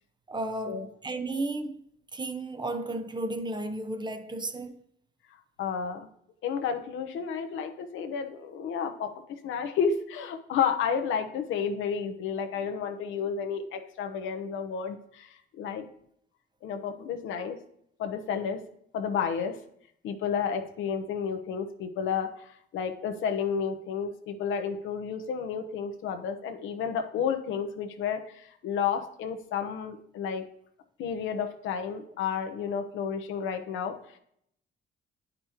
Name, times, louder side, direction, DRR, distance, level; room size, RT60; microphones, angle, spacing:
voice 1, 0.3-1.8 2.1-4.8, right 2 dB, 20° right, 0.7 m, -33 dB
voice 2, 5.6-6.1 6.4-9.1 9.4-15.9 16.6-17.6 18.0-18.6 18.9-19.6 20.0-30.4 31.0-34.2, left 7 dB, 80° left, 0.9 m, -31 dB
9.5 x 5.3 x 2.9 m
cardioid pair, 90°, 20 cm